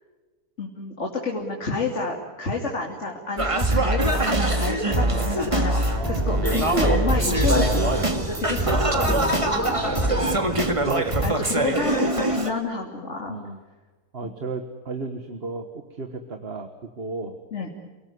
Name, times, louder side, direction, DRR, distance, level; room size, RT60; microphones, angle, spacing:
voice 1, 0.6-9.2 10.0-10.2 11.2-13.4 14.2-14.3 17.5-17.7, left 3 dB, 50° left, 1 dB, 3.0 m, -29 dB
Singing, 3.4-12.5, right 1 dB, 20° right, 2.1 m, -23 dB
Subway metro underground, 5.9-11.0, equal, 10° left, 3.7 m, -29 dB
voice 2, 5.9-6.6 8.7-9.0 9.7-10.6 10.8-11.1 13.3-13.6 14.1-17.4, right 3 dB, 40° right, 7 dB, 1.7 m, -34 dB
29.0 x 19.0 x 9.5 m, 1.3 s
omnidirectional pair, 1.6 m